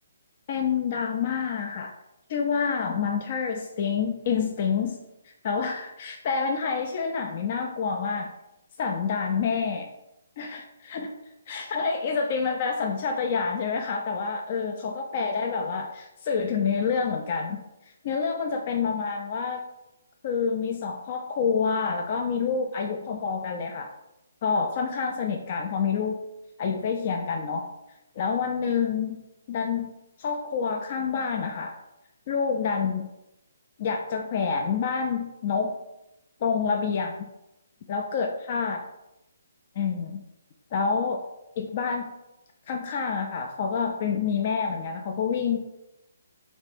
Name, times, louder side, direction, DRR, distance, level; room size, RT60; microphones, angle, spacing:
voice 1, 0.5-1.9 2.3-5.0 5.4-8.3 8.8-9.9 10.4-11.1 11.5-17.6 18.0-19.7 20.2-23.9 24.4-26.2 26.6-27.7 28.2-29.2 29.5-29.9 30.2-31.8 32.3-33.1 33.8-35.8 36.4-37.3 37.9-38.8 39.8-40.2 40.7-41.3 41.6-42.1 42.7-45.6, left 5 dB, 45° left, 4 dB, 0.3 m, -27 dB
3.3 x 3.0 x 3.2 m, 0.88 s
hypercardioid pair, 145°, 0 cm